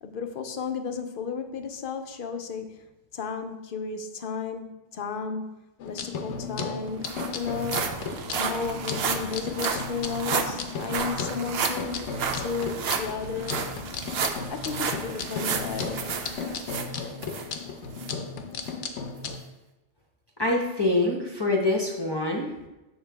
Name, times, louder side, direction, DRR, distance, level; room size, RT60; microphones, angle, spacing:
voice 1, 0.0-2.9 3.1-5.5 5.8-7.9 8.4-13.6 14.5-16.1, left 5 dB, 55° left, 7 dB, 0.7 m, -33 dB
sound 1, 5.8-19.4, left 5 dB, 85° left, 1.0 m, -35 dB
sound 2, 6.3-6.4 6.6-17.5 18.0-18.1 18.7-18.8, right 6 dB, 65° right, 0.8 m, -32 dB
voice 2, 20.4-22.5, left 2 dB, 25° left, -1 dB, 0.8 m, -25 dB
6.6 x 6.6 x 3.4 m, 1.0 s
omnidirectional pair, 1.2 m